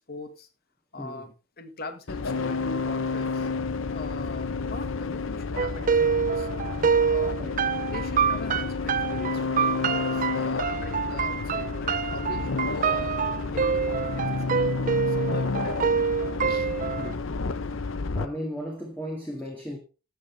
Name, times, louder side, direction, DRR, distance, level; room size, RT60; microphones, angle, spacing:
voice 1, 0.1-0.5 0.9-3.5 3.9-6.5 7.0-7.4 7.9-13.2 13.5-16.1 16.5-16.7, left 2 dB, 45° left, 1.7 m, -41 dB
voice 2, 1.0-1.3 7.4-7.5 17.0-17.3 18.1-19.8, equal, 10° left, 2.0 m, -35 dB
sound 1, 2.1-18.3, left 4 dB, 60° left, 0.7 m, -30 dB
sound 2, 5.6-17.1, right 6 dB, 35° right, 0.5 m, -26 dB
13.5 x 8.0 x 3.4 m
head